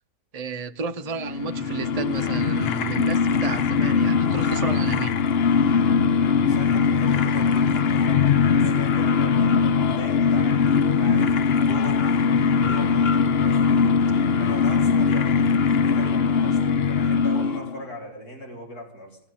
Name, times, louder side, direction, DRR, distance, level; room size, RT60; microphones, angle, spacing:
voice 1, 0.3-5.2, right 5 dB, 45° right, 0.5 m, -31 dB
sound 1, 1.2-17.8, left 6 dB, 55° left, 0.7 m, -21 dB
voice 2, 6.4-10.6 11.0-13.8 14.4-19.2, equal, 75° left, 4.9 m, -39 dB
15.5 x 9.2 x 8.6 m
omnidirectional pair, 1.6 m